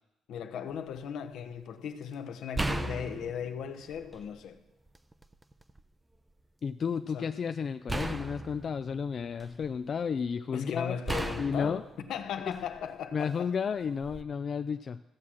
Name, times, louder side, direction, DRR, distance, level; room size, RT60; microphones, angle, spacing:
voice 1, 0.3-4.6 7.1-7.3 10.5-13.5, left 8 dB, 80° left, 1.0 m, -37 dB
sound 1, 0.7-1.0 2.5-4.4 4.9-5.8 7.9-9.8 11.1-12.9 14.0-14.2, right 2 dB, 15° right, 0.6 m, -37 dB
voice 2, 6.6-11.0 11.4-11.8 12.5-12.6 13.1-15.0, left 6 dB, 50° left, 0.4 m, -32 dB
14.5 x 7.3 x 6.2 m
cardioid pair, 90°, 0 cm